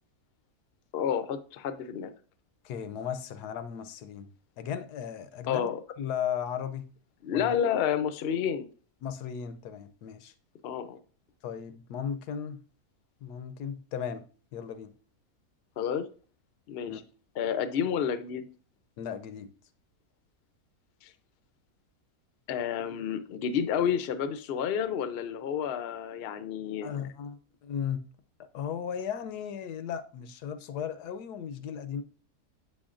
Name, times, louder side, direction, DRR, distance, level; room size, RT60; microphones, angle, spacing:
voice 1, 0.9-2.1 5.5-5.8 7.2-8.7 10.6-11.0 15.8-16.1 16.7-17.0 17.4-18.4 21.0-21.1 22.5-26.9, left 8 dB, 65° left, 0.6 m, -30 dB
voice 2, 2.6-4.3 4.6-5.7 6.0-6.9 7.3-7.6 9.0-10.3 11.4-12.6 13.2-14.3 14.5-14.9 16.9-17.0 19.0-19.5 26.8-28.0 28.5-32.0, left 8 dB, 85° left, 1.2 m, -36 dB
7.8 x 6.1 x 2.5 m
omnidirectional pair, 1.7 m